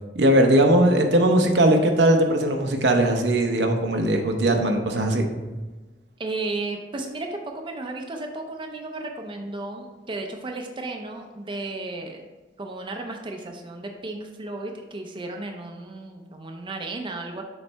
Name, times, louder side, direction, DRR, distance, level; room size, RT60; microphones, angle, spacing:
voice 1, 0.1-5.3, right 1 dB, 75° right, 4 dB, 0.8 m, -19 dB
voice 2, 6.2-12.2 12.6-17.4, right 2 dB, 30° right, 3 dB, 0.5 m, -34 dB
7.0 x 3.3 x 4.5 m, 1.2 s
head